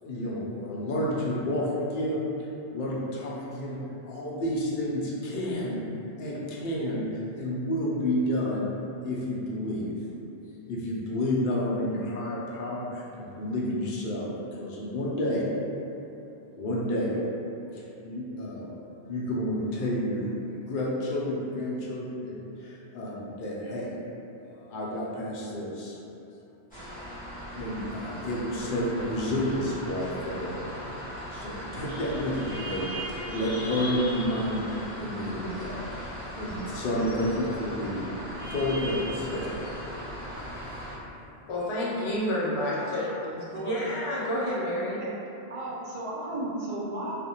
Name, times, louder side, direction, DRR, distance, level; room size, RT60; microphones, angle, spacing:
voice 1, 0.0-3.8 4.0-5.8 6.2-8.6 9.0-10.1 10.6-15.5 16.6-17.2 17.7-18.8 19.1-20.4 20.7-24.0 24.4-26.0 27.5-30.6 31.3-34.6 34.9-35.8 36.3-40.2, left 1 dB, 60° left, -5 dB, 0.6 m, -30 dB
sound 1, 26.7-41.0, equal, 10° left, 0.9 m, -38 dB
voice 2, 41.5-43.1 43.6-45.0, equal, 90° left, -6 dB, 0.9 m, -29 dB
voice 3, 42.5-42.9 43.5-43.8 45.5-47.2, right 1 dB, 60° right, -5 dB, 0.4 m, -34 dB
2.4 x 2.1 x 2.8 m, 2.8 s
omnidirectional pair, 1.1 m